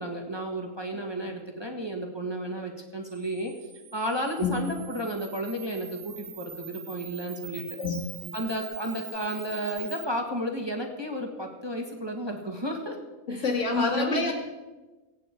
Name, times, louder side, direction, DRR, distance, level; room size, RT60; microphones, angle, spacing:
voice 1, 0.0-3.5 3.9-7.8 8.3-13.0 13.3-13.4 13.7-14.3, equal, 20° right, 2 dB, 1.6 m, -32 dB
Camera, 3.0-10.1, right 9 dB, 90° right, 1.4 m, -44 dB
voice 2, 7.8-8.3 13.3-14.3, left 4 dB, 55° left, 2 dB, 2.4 m, -28 dB
24.0 x 9.0 x 4.5 m, 1.2 s
omnidirectional pair, 1.5 m